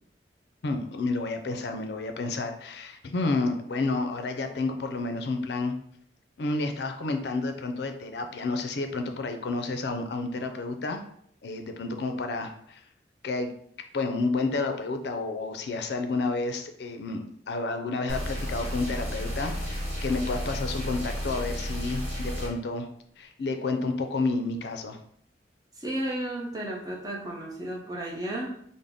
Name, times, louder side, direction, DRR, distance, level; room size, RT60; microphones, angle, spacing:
voice 1, 0.6-5.7 6.4-11.0 11.4-12.8 13.2-13.5 13.9-22.9 23.2-25.0, left 3 dB, 70° left, 6 dB, 0.4 m, -30 dB
sound 1, 18.1-22.5, equal, 35° right, 1.1 m, -32 dB
voice 2, 25.8-28.5, right 1 dB, 20° right, -3 dB, 0.7 m, -33 dB
3.7 x 2.1 x 3.4 m, 0.66 s
head